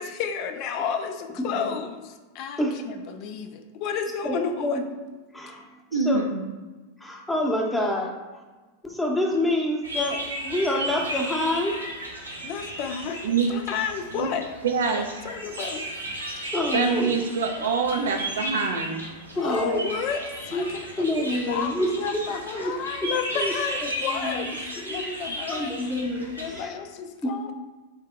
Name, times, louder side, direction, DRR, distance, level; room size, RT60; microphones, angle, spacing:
voice 1, 0.0-4.8 12.4-13.2 13.5-14.4 14.9-15.8 16.3-16.5 19.4-25.8 26.4-27.5, left 7 dB, 40° left, 6 dB, 0.4 m, -32 dB
voice 2, 4.2-4.8 5.3-6.2 7.0-8.1 8.8-11.7 16.5-17.1 17.4-17.7 19.4-19.9 20.5-20.7 21.0-21.9 22.5-22.7 23.0-23.5 23.8-24.5 24.8-25.1 25.5-26.7 27.2-27.3, left 1 dB, 5° left, -1 dB, 0.8 m, -27 dB
voice 3, 5.9-6.5 13.2-13.5 14.1-14.3 14.6-15.2 16.7-19.0, right 4 dB, 60° right, 4 dB, 0.5 m, -25 dB
sound 1, 9.8-26.6, right 1 dB, 80° right, 0.9 m, -35 dB
4.4 x 2.7 x 3.6 m, 1.3 s
figure-of-eight pair, 90°, 0 cm